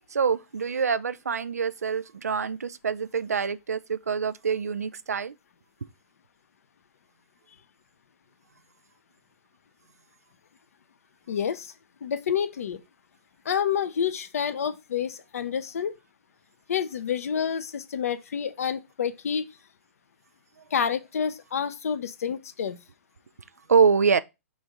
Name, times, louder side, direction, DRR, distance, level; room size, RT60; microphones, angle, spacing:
voice 1, 0.1-5.3 23.7-24.2, right 6 dB, 85° right, 0.4 m, -25 dB
voice 2, 11.3-11.7 12.0-12.8 13.4-15.9 16.7-19.5 20.7-22.8, left 7 dB, 70° left, 0.6 m, -28 dB
4.0 x 2.5 x 4.6 m
hypercardioid pair, 120°, 8 cm